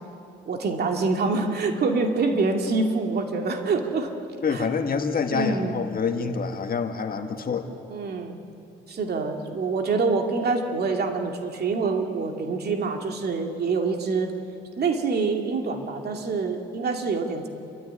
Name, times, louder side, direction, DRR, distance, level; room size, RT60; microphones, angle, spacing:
voice 1, 0.5-4.1 4.5-4.6 5.3-5.7 7.9-8.4 8.9-14.3 14.8-17.5, right 4 dB, 55° right, 3 dB, 2.5 m, -26 dB
voice 2, 4.4-7.7, left 5 dB, 45° left, 6 dB, 1.8 m, -27 dB
28.5 x 13.0 x 9.8 m, 2.7 s
cardioid pair, 90°, 20 cm